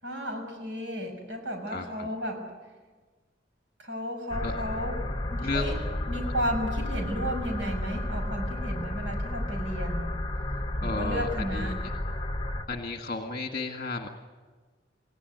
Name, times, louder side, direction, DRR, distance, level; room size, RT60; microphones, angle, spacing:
voice 1, 0.0-2.4 3.8-4.9 5.3-5.7 6.1-10.1 10.8-11.9, equal, 85° right, 3 dB, 6.3 m, -33 dB
voice 2, 1.7-2.1 4.4-4.5 5.4-5.8 10.8-11.9 12.7-14.1, left 3 dB, 45° left, 4 dB, 1.8 m, -33 dB
sound 1, 4.3-12.7, left 1 dB, 25° left, 1.3 m, -32 dB
29.0 x 16.5 x 9.5 m, 1.4 s
head